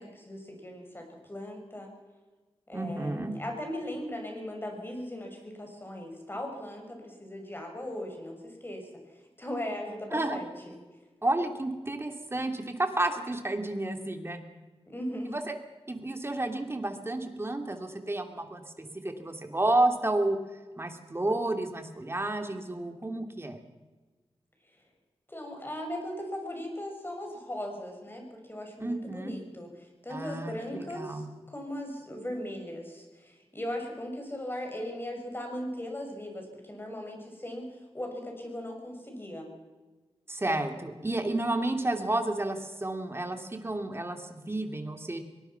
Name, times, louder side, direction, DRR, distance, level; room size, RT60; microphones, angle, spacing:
voice 1, 0.0-1.9 2.7-8.9 9.4-10.8 14.8-15.3 25.3-37.7 37.9-39.5, left 1 dB, 20° left, 2 dB, 6.2 m, -38 dB
voice 2, 2.7-3.3 10.1-10.4 11.2-14.4 15.2-15.5 15.9-20.4 20.8-23.6 28.8-29.3 30.1-31.3 40.3-45.2, right 2 dB, 25° right, 5 dB, 2.8 m, -31 dB
23.0 x 19.5 x 5.9 m, 1.3 s
wide cardioid pair, 80°, 10 cm